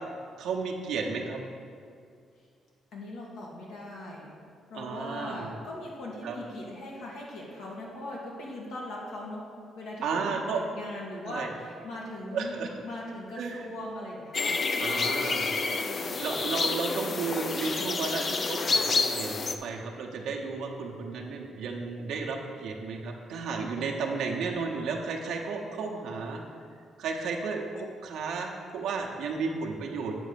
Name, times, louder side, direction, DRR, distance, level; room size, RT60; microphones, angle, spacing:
voice 1, 0.4-1.4 4.7-5.6 6.2-6.4 10.0-10.6 11.2-11.5 12.3-12.7 13.4-13.7 14.8-15.5 16.2-26.4 27.0-30.2, right 4 dB, 80° right, 0 dB, 1.0 m, -33 dB
voice 2, 2.9-4.3 4.7-12.6 12.8-14.6 15.7-16.3, left 1 dB, 80° left, -4 dB, 2.0 m, -40 dB
sound 1, 14.3-19.5, left 4 dB, 40° left, 0.5 m, -29 dB
8.4 x 4.0 x 6.9 m, 2.4 s
cardioid pair, 90°, 0 cm